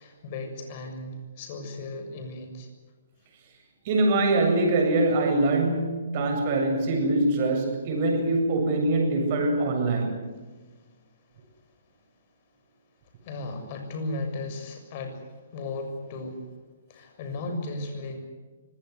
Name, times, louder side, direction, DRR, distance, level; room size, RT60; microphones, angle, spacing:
voice 1, 0.0-2.7 10.5-10.9 13.2-16.5 16.9-18.3, left 2 dB, 40° left, 6.9 m, -36 dB
voice 2, 3.8-10.3, right 2 dB, 45° right, 8.0 m, -23 dB
24.5 x 18.5 x 9.7 m
hypercardioid pair, 130°, 0 cm